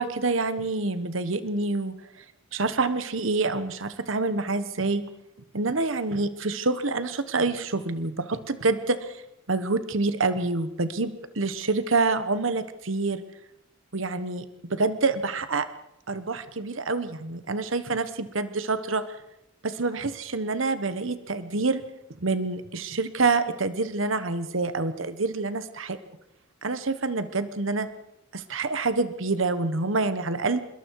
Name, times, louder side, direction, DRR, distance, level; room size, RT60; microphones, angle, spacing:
voice 1, 0.0-2.2 2.5-5.0 5.5-9.2 9.5-13.2 13.9-15.7 16.1-19.0 19.6-21.8 22.2-26.0 26.6-27.9 28.3-30.6, right 3 dB, 70° right, 12 dB, 1.2 m, -27 dB
25.5 x 21.5 x 4.8 m, 0.84 s
head